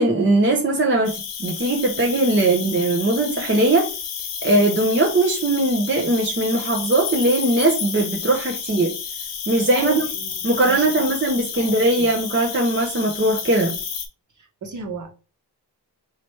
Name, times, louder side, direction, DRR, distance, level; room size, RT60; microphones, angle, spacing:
voice 1, 0.0-3.9 4.4-8.9 9.5-10.1 10.4-13.8, right 2 dB, 25° right, 0.8 m, -20 dB
Cricket, 1.0-14.1, left 7 dB, 90° left, 1.0 m, -31 dB
voice 2, 9.7-11.1 11.5-12.1 14.4-15.1, right 5 dB, 45° right, 1.3 m, -34 dB
3.2 x 3.0 x 4.4 m
cardioid pair, 65°, 43 cm